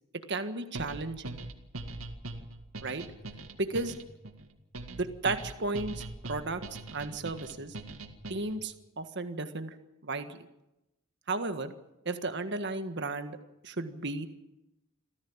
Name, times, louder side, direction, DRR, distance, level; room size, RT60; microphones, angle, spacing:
voice 1, 0.3-1.4 2.8-3.0 3.6-3.9 4.9-6.6 6.9-7.7 8.3-9.7 10.0-10.5 11.3-11.7 12.0-13.4 13.6-14.3, right 3 dB, 55° right, 8 dB, 1.6 m, -34 dB
sound 1, 0.7-8.7, right 2 dB, 75° right, 2.1 m, -42 dB
27.0 x 15.0 x 7.3 m, 0.91 s
head